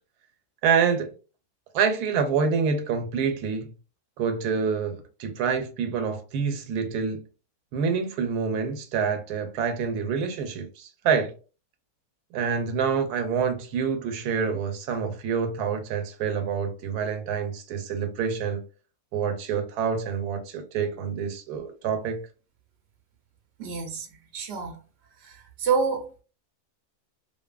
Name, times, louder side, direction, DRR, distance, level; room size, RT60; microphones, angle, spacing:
voice 1, 0.6-1.1 1.7-3.7 4.2-7.2 7.7-11.3 12.3-18.6 19.1-22.2, right 6 dB, 80° right, 1.1 m, -27 dB
voice 2, 23.6-24.1 24.3-24.8 25.2-26.1, right 5 dB, 65° right, 0.7 m, -27 dB
2.6 x 2.5 x 2.3 m
omnidirectional pair, 1.6 m